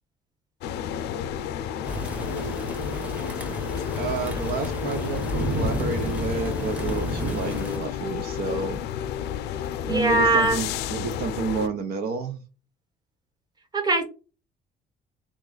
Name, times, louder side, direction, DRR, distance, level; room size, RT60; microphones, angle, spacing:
sound 1, 0.6-11.7, left 8 dB, 85° left, 0.5 m, -31 dB
sound 2, 1.9-7.8, equal, 10° right, 0.9 m, -32 dB
voice 1, 4.0-8.8 9.9-12.4, right 5 dB, 65° right, 7 dB, 0.7 m, -30 dB
voice 2, 9.8-10.6 13.7-14.0, right 2 dB, 25° right, 6 dB, 1.2 m, -21 dB
3.6 x 3.0 x 3.9 m, 0.32 s
cardioid pair, 110°, 17 cm